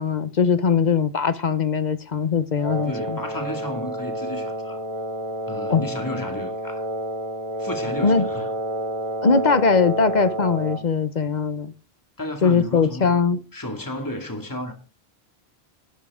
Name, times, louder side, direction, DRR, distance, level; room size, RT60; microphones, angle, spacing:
voice 1, 0.0-3.2 5.7-5.8 8.0-8.2 9.2-11.7 12.4-13.4, left 5 dB, 45° left, 0.9 m, -20 dB
Wind instrument woodwind instrument, 2.6-10.9, right 1 dB, 30° right, 1.2 m, -29 dB
voice 2, 2.9-4.8 5.5-6.9 7.6-8.5 12.2-13.1 13.5-14.7, left 1 dB, 20° left, 2.2 m, -32 dB
13.0 x 11.5 x 3.6 m
omnidirectional pair, 1.1 m